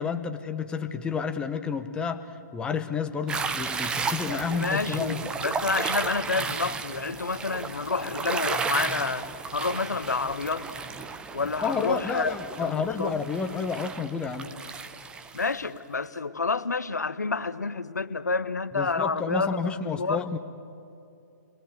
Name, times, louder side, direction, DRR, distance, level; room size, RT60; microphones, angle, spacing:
voice 1, 0.0-5.2 11.6-14.5 18.8-20.4, left 5 dB, 10° left, 8 dB, 1.1 m, -30 dB
sound 1, 3.3-15.5, right 5 dB, 10° right, 0.8 m, -33 dB
voice 2, 4.3-10.7 11.3-13.1 15.3-20.2, left 4 dB, 70° left, 11 dB, 1.3 m, -29 dB
30.0 x 22.0 x 7.8 m, 2.7 s
figure-of-eight pair, 130°, 9 cm